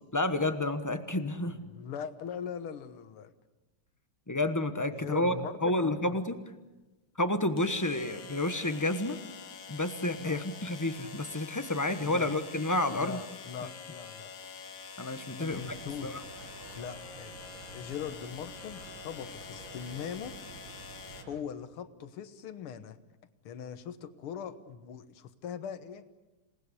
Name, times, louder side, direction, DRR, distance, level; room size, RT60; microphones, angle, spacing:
voice 1, 0.1-1.6 4.3-5.3 5.6-6.4 7.2-9.2 9.7-13.2 13.6-13.7 15.0-15.6 16.0-16.2, left 2 dB, 15° left, 9 dB, 0.7 m, -30 dB
voice 2, 1.5-3.3 4.9-6.2 10.2-10.4 12.0-12.3 12.9-14.3 15.3-16.1 16.8-17.4 17.7-20.4 21.3-23.0 23.4-26.1, left 8 dB, 80° left, 11 dB, 2.1 m, -41 dB
sound 1, 5.5-5.6 7.6-21.2, left 6 dB, 65° left, 2.0 m, -46 dB
sound 2, 15.5-21.4, right 4 dB, 70° right, 2.7 m, -50 dB
27.5 x 19.5 x 8.3 m, 1.1 s
omnidirectional pair, 2.4 m